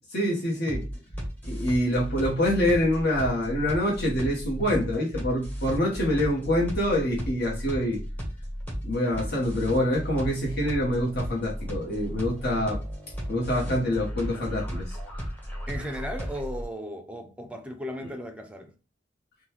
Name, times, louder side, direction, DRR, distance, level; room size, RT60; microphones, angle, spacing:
voice 1, 0.1-0.9 1.4-8.0 8.8-12.8 13.3-15.0, left 1 dB, 60° left, 1.0 m, -26 dB
sound 1, 0.7-16.6, equal, 10° left, 1.0 m, -35 dB
voice 2, 15.7-18.7, equal, 5° right, 0.5 m, -36 dB
3.7 x 2.2 x 2.9 m
head